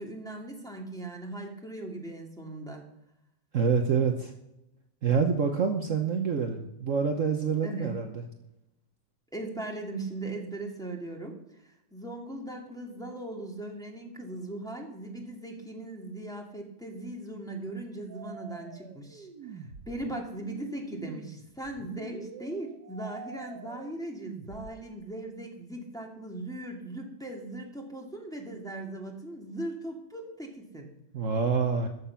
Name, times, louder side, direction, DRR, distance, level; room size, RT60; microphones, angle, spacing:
voice 1, 0.0-2.8 7.6-7.9 9.3-30.9, right 1 dB, ahead, 0 dB, 2.2 m, -39 dB
voice 2, 3.5-4.3 5.0-8.3 31.1-31.9, right 5 dB, 50° right, 4 dB, 1.3 m, -26 dB
sound 1, 18.1-24.7, right 6 dB, 75° right, 1.9 m, -46 dB
14.5 x 10.0 x 5.8 m, 0.88 s
omnidirectional pair, 1.9 m